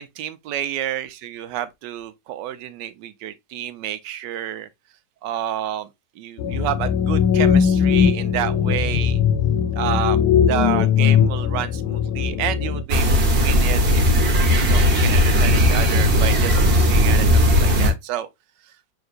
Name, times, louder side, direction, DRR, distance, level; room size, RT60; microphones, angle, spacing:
voice 1, 0.0-4.7 5.2-5.9 6.2-9.2 9.8-18.3, right 11 dB, 85° right, 1.2 m, -29 dB
sound 1, 6.4-12.8, left 8 dB, 75° left, 1.1 m, -19 dB
sound 2, 12.9-17.9, left 1 dB, 40° right, 1.2 m, -17 dB
6.1 x 2.9 x 2.4 m
omnidirectional pair, 1.9 m